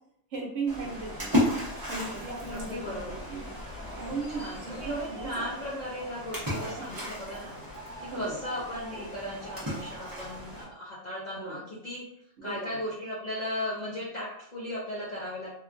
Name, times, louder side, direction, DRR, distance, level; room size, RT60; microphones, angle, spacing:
voice 1, 0.3-1.4 1.9-3.5 3.9-5.8 6.8-7.0 8.1-8.4 11.4-11.6 12.4-12.8, right 4 dB, 65° right, 0 dB, 0.9 m, -37 dB
Splash splatter, 0.7-10.6, left 1 dB, 20° right, 0.7 m, -35 dB
voice 2, 2.5-3.2 4.1-7.6 8.0-12.0 12.4-15.6, left 1 dB, 45° left, -7 dB, 0.6 m, -37 dB
sound 1, 3.7-10.7, right 1 dB, 70° left, 1.0 m, -49 dB
2.8 x 2.3 x 2.4 m, 0.72 s
omnidirectional pair, 1.4 m